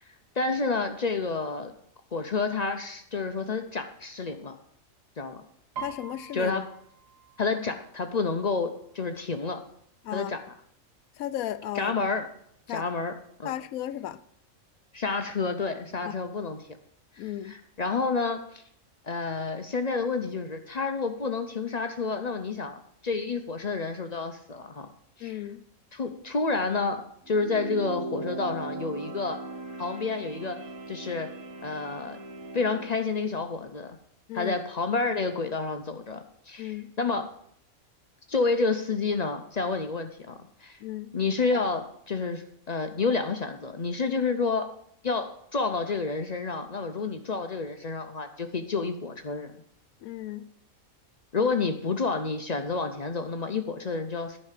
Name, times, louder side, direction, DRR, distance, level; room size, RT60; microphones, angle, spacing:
voice 1, 0.4-1.7 2.1-4.6 5.2-5.4 6.3-6.7 7.4-9.6 10.1-10.4 11.7-12.3 12.7-13.1 13.4-13.5 14.9-16.6 17.2-18.6 19.0-24.9 25.2-25.4 25.9-29.4 29.8-30.6 30.9-31.3 31.6-32.2 32.5-34.0 34.3-37.3 38.3-40.8 41.1-44.7 45.0-49.5 51.3-54.4, left 4 dB, 45° left, 0.5 m, -29 dB
voice 2, 5.8-6.5 10.0-10.4 11.2-12.0 12.7-12.9 13.4-14.2 16.0-16.1 17.2-17.6 25.2-25.6 34.3-34.5 36.6-36.9 40.8-41.1 50.0-50.5, left 12 dB, 85° left, 1.0 m, -35 dB
Piano, 5.8-9.4 9.8-10.2 10.5-11.1 11.7-11.8 12.1-13.1 13.5-13.6, right 7 dB, 70° right, 1.7 m, -45 dB
sound 1, 27.2-33.0, right 2 dB, 85° right, 1.7 m, -38 dB
9.7 x 5.4 x 7.3 m
omnidirectional pair, 1.4 m